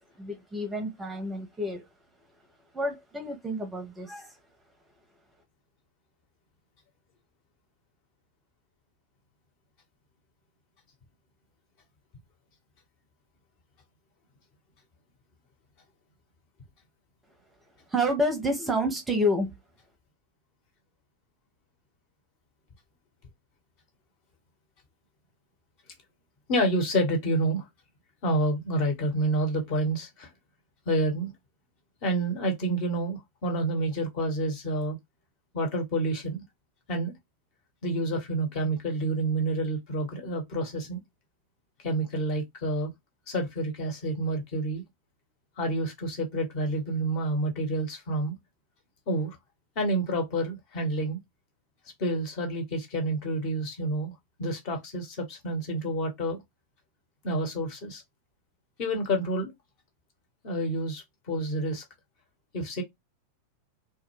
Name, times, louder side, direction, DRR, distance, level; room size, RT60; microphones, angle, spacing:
voice 1, 0.2-1.8 2.7-4.4 17.9-19.5, equal, 10° right, 0.6 m, -29 dB
voice 2, 26.5-27.7 28.2-30.3 30.9-31.3 32.0-35.0 35.5-36.4 36.9-37.1 37.8-41.0 41.8-42.9 43.3-44.8 45.6-48.3 49.1-49.4 49.8-51.2 52.0-54.1 54.4-56.4 57.2-58.0 58.8-59.5 60.4-61.8 62.5-62.8, right 1 dB, 45° left, 1.0 m, -28 dB
2.3 x 2.1 x 3.1 m
figure-of-eight pair, 90°, 0 cm